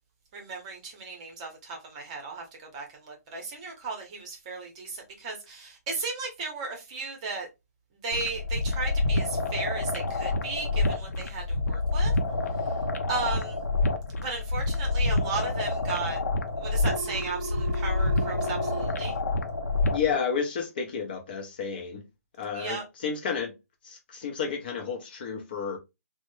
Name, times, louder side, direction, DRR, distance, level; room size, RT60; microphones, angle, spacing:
voice 1, 0.3-7.5 8.0-12.1 13.1-13.6 14.2-16.2 16.6-19.1 22.5-22.8, right 4 dB, 25° right, 0.8 m, -35 dB
sound 1, 8.1-20.1, left 2 dB, 75° left, 0.6 m, -28 dB
Telephone, 16.8-18.8, right 3 dB, 90° right, 0.6 m, -36 dB
voice 2, 19.9-22.0 22.4-23.6 23.8-25.8, left 6 dB, 35° left, 0.6 m, -31 dB
3.1 x 2.1 x 3.1 m
hypercardioid pair, 165°, 9 cm